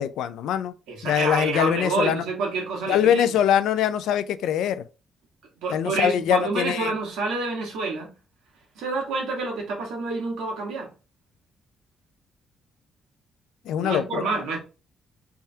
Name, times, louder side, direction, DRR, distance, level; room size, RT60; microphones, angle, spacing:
voice 1, 0.0-0.7 1.0-2.2 2.9-4.8 5.7-6.9 13.7-14.3, left 9 dB, 85° left, 0.4 m, -23 dB
voice 2, 0.9-3.3 5.6-8.1 8.7-10.9 13.8-14.6, right 3 dB, 85° right, 1.4 m, -28 dB
3.4 x 2.7 x 3.3 m
cardioid pair, 90°, 0 cm